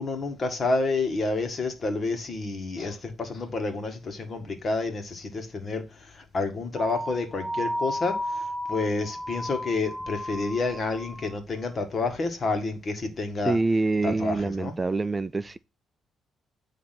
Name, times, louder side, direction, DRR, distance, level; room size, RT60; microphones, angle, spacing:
voice 1, 0.0-13.6 14.0-14.7, left 3 dB, 40° left, 1.9 m, -29 dB
sound 1, 6.8-11.4, equal, 10° left, 4.0 m, -33 dB
voice 2, 13.4-15.6, right 3 dB, 20° right, 0.3 m, -26 dB
8.7 x 3.3 x 5.9 m
cardioid pair, 90°, 0 cm